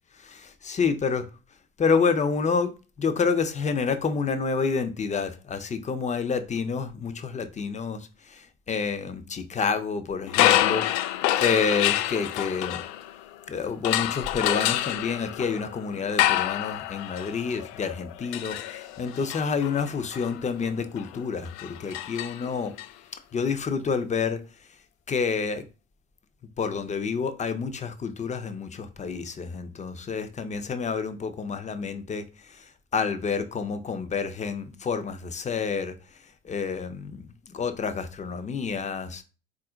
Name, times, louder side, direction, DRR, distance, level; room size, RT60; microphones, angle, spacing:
voice 1, 0.2-1.2 1.8-2.7 3.0-11.1 11.4-12.8 13.5-22.7 23.3-24.4 25.1-25.6 26.6-32.7 32.9-35.9 36.4-39.2, left 5 dB, 20° left, 0.6 m, -28 dB
sound 1, 10.3-13.4 13.8-22.9, left 13 dB, 60° left, 0.5 m, -27 dB
4.1 x 2.5 x 3.8 m
hypercardioid pair, 70°, 39 cm